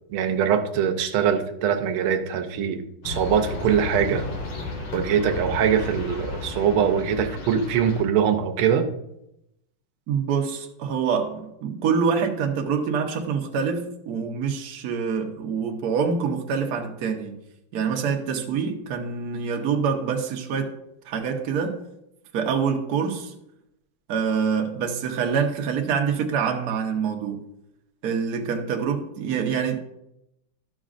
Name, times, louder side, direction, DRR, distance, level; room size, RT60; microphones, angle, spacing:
voice 1, 0.1-4.3 4.9-8.9, right 8 dB, 85° right, 1.5 m, -23 dB
sound 1, 3.0-8.0, left 2 dB, 90° left, 2.3 m, -33 dB
voice 2, 10.1-17.4 17.7-20.7 21.0-21.8 22.3-23.3 24.1-27.4 28.0-29.8, right 6 dB, 55° right, 1.2 m, -26 dB
12.5 x 6.1 x 2.5 m
omnidirectional pair, 2.3 m